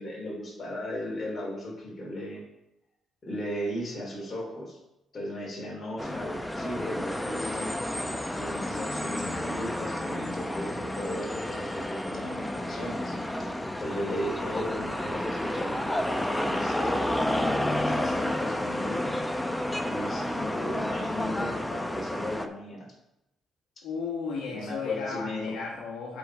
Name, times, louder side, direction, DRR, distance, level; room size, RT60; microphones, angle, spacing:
voice 1, 0.0-2.4 3.2-4.8 5.1-7.7 8.3-13.2 13.8-17.2 17.8-19.1 19.8-22.9 24.5-25.6, left 1 dB, 35° left, -2 dB, 3.3 m, -36 dB
sound 1, 6.0-22.5, left 1 dB, 5° left, 0.6 m, -31 dB
voice 2, 23.8-26.2, left 5 dB, 85° left, -3 dB, 1.5 m, -34 dB
8.2 x 5.0 x 4.7 m, 0.88 s
cardioid pair, 90°, 0 cm